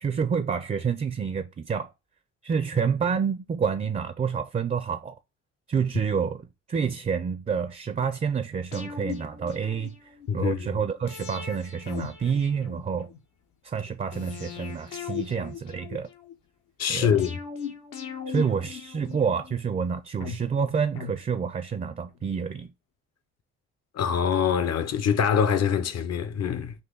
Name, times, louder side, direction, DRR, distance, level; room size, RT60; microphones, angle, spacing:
voice 1, 0.0-1.9 2.4-5.2 5.7-13.1 13.6-16.1 16.9-17.2 18.3-22.7, right 6 dB, 25° right, 0.4 m, -28 dB
sound 1, 8.7-10.3 11.1-13.2 14.1-16.3 17.2-19.5 20.2-21.9 22.2-22.3, left 7 dB, 80° left, 1.0 m, -39 dB
voice 2, 10.3-10.7 16.8-17.4 23.9-26.7, left 7 dB, 55° left, 0.7 m, -24 dB
4.1 x 2.6 x 3.7 m
supercardioid pair, 70°, 30 cm